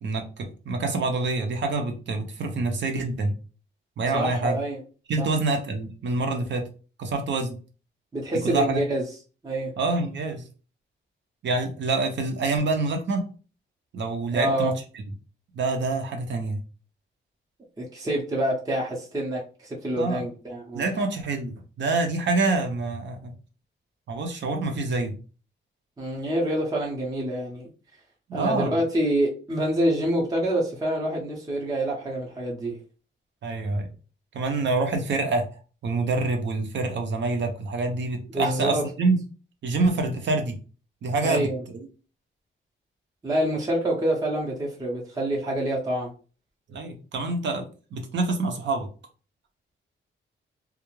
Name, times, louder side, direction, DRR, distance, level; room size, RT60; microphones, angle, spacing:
voice 1, 0.0-3.3 4.0-4.6 5.1-6.7 7.0-7.6 8.4-8.8 9.8-10.4 11.4-13.2 13.9-14.7 15.5-16.6 20.0-20.2 20.7-23.3 24.1-25.1 28.3-28.8 33.4-33.9 34.3-35.4 35.8-39.2 39.6-40.6 41.0-41.9 46.7-48.9, right 3 dB, 65° right, 4 dB, 0.6 m, -26 dB
voice 2, 4.1-4.8 5.2-5.3 8.1-9.0 9.4-9.7 14.3-14.7 17.8-20.9 26.0-27.7 28.3-32.8 38.3-38.9 41.2-41.6 43.2-46.1, right 1 dB, 20° right, -3 dB, 0.6 m, -26 dB
2.3 x 2.0 x 3.0 m, 0.36 s
cardioid pair, 115°, 20 cm